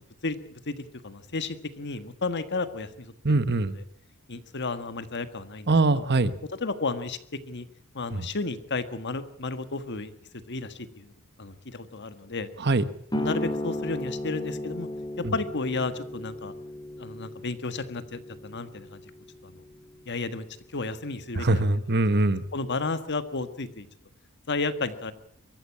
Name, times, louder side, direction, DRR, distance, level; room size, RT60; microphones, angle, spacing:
voice 1, 0.2-3.4 3.7-3.8 4.3-6.0 6.6-7.2 7.5-7.7 7.9-10.1 10.5-11.1 11.4-12.5 13.2-14.9 15.2-16.5 17.0-19.0 19.4-19.6 20.0-20.5 20.7-21.7 22.5-23.9 24.5-25.1, left 3 dB, 55° left, 11 dB, 1.6 m, -32 dB
voice 2, 3.2-3.7 5.7-6.3 8.1-8.2 12.6-12.8 15.2-15.3 21.3-22.4, right 2 dB, 50° right, 13 dB, 1.1 m, -22 dB
sound 1, 13.1-20.3, left 1 dB, 20° left, 3.5 m, -35 dB
24.0 x 14.0 x 8.6 m, 0.66 s
head